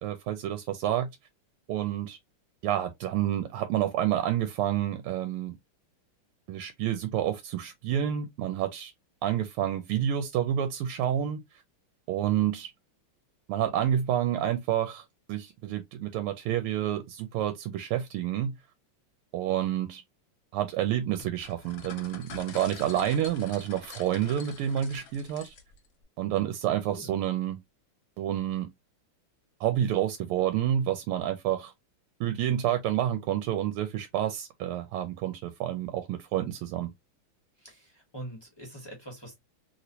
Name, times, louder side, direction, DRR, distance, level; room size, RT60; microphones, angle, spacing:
voice 1, 0.0-1.1 1.7-2.2 2.6-5.6 6.5-8.9 9.2-11.6 12.1-12.7 13.5-18.5 19.3-20.0 20.5-25.6 26.2-27.6 28.2-28.7 29.6-31.7 32.2-36.9, right 11 dB, 90° right, 1.5 m, -29 dB
sound 1, 21.2-25.9, left 6 dB, 60° left, 0.9 m, -46 dB
voice 2, 37.6-39.4, right 1 dB, 40° left, 0.3 m, -44 dB
3.1 x 3.0 x 2.7 m
omnidirectional pair, 2.4 m